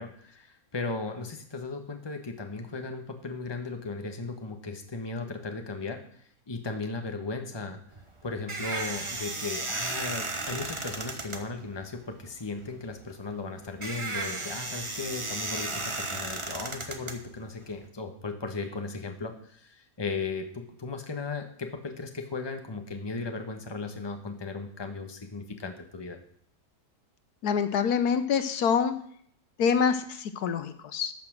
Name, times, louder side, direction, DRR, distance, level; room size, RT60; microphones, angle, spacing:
voice 1, 0.0-7.8 8.2-26.2, left 3 dB, 20° left, 5 dB, 1.1 m, -36 dB
sound 1, 7.9-17.8, right 2 dB, 25° right, 1.0 m, -35 dB
voice 2, 27.4-29.0 29.6-31.1, left 7 dB, 80° left, 11 dB, 1.4 m, -26 dB
12.0 x 5.9 x 7.3 m, 0.63 s
omnidirectional pair, 1.6 m